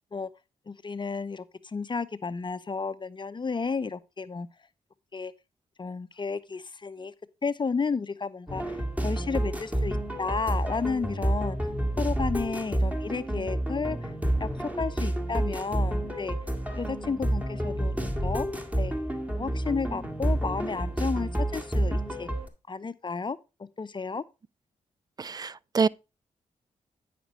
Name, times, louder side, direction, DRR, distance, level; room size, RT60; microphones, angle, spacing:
voice 1, 0.7-4.5 5.1-5.3 5.8-7.1 7.4-11.6 12.0-14.1 14.4-16.4 16.7-18.5 18.8-18.9 19.3-22.3 22.7-23.4 23.8-24.2, left 4 dB, 35° left, 0.6 m, -32 dB
sound 1, 8.5-22.5, right 1 dB, 10° right, 1.9 m, -29 dB
voice 2, 25.2-25.9, right 5 dB, 30° right, 0.3 m, -26 dB
9.4 x 5.1 x 4.4 m
supercardioid pair, 50°, 14 cm